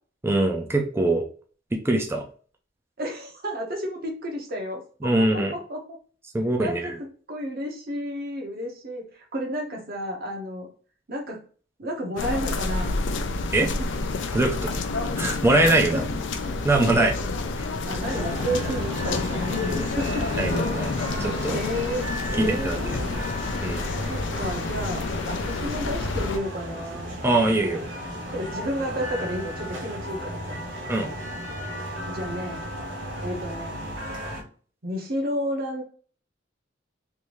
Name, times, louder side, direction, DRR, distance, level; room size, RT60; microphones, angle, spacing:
voice 1, 0.2-1.2 1.7-2.3 5.0-5.5 6.3-7.0 13.5-13.7 14.3-14.6 15.2-16.1 16.6-17.1 17.6-17.7 19.7-19.9 20.4-20.9 21.2-21.6 22.4-22.8 23.6-23.8 27.2-27.8 30.9-31.1, right 2 dB, 15° right, 2 dB, 0.4 m, -22 dB
voice 2, 3.0-5.8 6.6-9.0 9.3-10.7 11.1-11.4 11.8-13.0 13.6-13.9 15.9-16.0 17.0-17.3 17.8-20.3 21.4-23.3 24.1-27.2 28.3-30.6 32.0-32.6 33.2-33.8 34.8-35.8, equal, 55° right, 0 dB, 1.1 m, -32 dB
sound 1, 12.2-26.4, left 3 dB, 70° left, 0.4 m, -29 dB
sound 2, 18.0-34.4, equal, 75° right, 0.9 m, -34 dB
3.4 x 2.6 x 3.0 m, 0.42 s
head